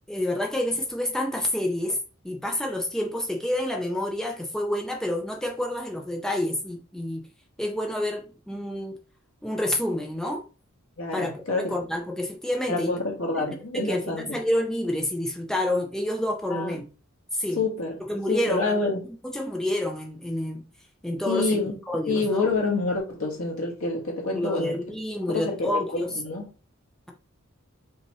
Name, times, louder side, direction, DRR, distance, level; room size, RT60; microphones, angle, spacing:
voice 1, 0.1-2.0 2.2-7.2 7.6-9.0 9.4-10.4 11.1-11.4 11.7-12.9 13.3-13.4 13.7-16.8 17.4-17.6 18.1-18.9 19.2-20.6 21.0-21.6 21.9-22.4 24.3-26.1, left 1 dB, ahead, 0.5 m, -28 dB
voice 2, 11.0-11.7 12.7-14.4 16.5-16.8 17.5-18.0 18.3-19.0 21.3-21.8 22.1-24.8 25.3-26.5, left 3 dB, 75° left, 1.6 m, -27 dB
5.4 x 2.9 x 3.0 m
head